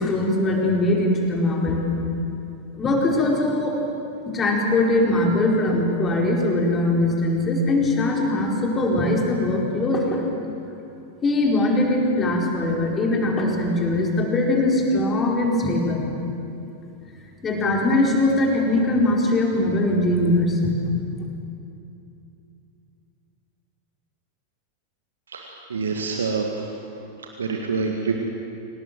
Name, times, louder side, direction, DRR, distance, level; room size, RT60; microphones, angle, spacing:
voice 1, 0.0-1.9 2.8-3.8 4.3-10.2 11.2-16.0 17.4-20.7, left 2 dB, 20° left, -1 dB, 4.7 m, -21 dB
voice 2, 25.3-26.7 27.4-28.1, right 4 dB, 70° right, 2 dB, 1.8 m, -26 dB
26.5 x 19.0 x 7.7 m, 2.8 s
figure-of-eight pair, 90°, 0 cm